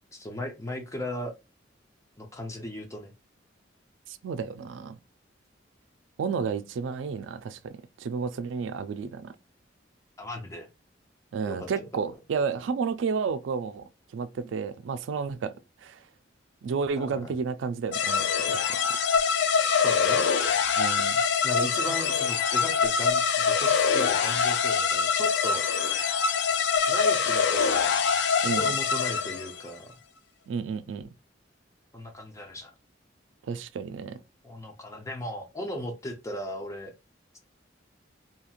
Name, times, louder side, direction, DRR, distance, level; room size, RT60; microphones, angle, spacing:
voice 1, 0.1-1.3 2.2-3.1 10.2-10.7 11.5-11.9 17.0-17.4 19.8-20.3 21.4-25.6 26.9-28.0 28.5-29.9 31.9-32.7 34.4-36.9, left 1 dB, 15° left, 0.6 m, -37 dB
voice 2, 4.1-5.0 6.2-7.7 8.0-9.3 11.3-15.5 15.8-16.0 16.6-18.3 18.5-18.8 20.8-21.2 28.4-28.7 30.5-31.1 33.5-34.2, right 5 dB, 85° right, 0.3 m, -31 dB
sound 1, 17.9-29.6, left 6 dB, 70° left, 0.4 m, -24 dB
2.9 x 2.8 x 2.4 m
head